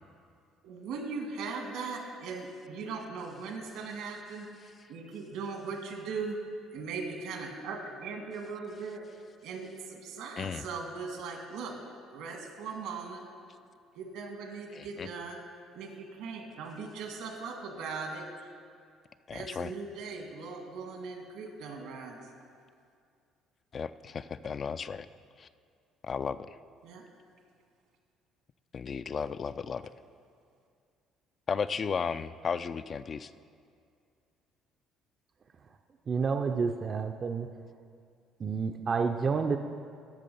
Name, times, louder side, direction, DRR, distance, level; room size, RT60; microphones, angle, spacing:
voice 1, 0.6-4.5 4.9-6.4 6.7-9.0 9.4-11.7 12.1-13.2 14.0-15.4 15.7-18.5 19.3-22.3 26.8-27.0, right 4 dB, 80° right, 2 dB, 1.7 m, -39 dB
voice 2, 14.7-15.1 19.3-19.7 23.7-25.1 25.4-25.5 26.0-26.6 28.7-29.9 31.5-33.3, left 6 dB, 40° left, 13 dB, 0.3 m, -34 dB
voice 3, 36.1-37.5 38.4-39.6, right 5 dB, 40° right, 5 dB, 0.5 m, -29 dB
13.0 x 5.7 x 5.4 m, 2.3 s
cardioid pair, 95°, 0 cm